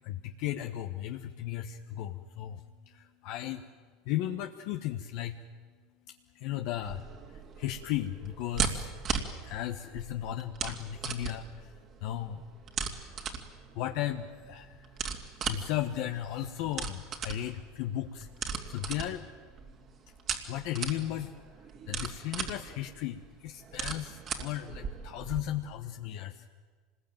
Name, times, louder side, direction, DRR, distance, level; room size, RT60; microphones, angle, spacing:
voice 1, 0.0-2.6 2.9-3.6 4.1-5.4 6.3-7.0 7.6-8.9 9.4-11.7 12.0-12.4 13.7-14.8 15.5-18.3 18.7-19.3 20.5-21.3 21.9-26.4, left 12 dB, 65° left, 5 dB, 1.2 m, -35 dB
sound 1, 6.8-25.4, right 6 dB, 45° right, 2.9 m, -38 dB
26.0 x 20.5 x 9.1 m, 1.5 s
hypercardioid pair, 95°, 0 cm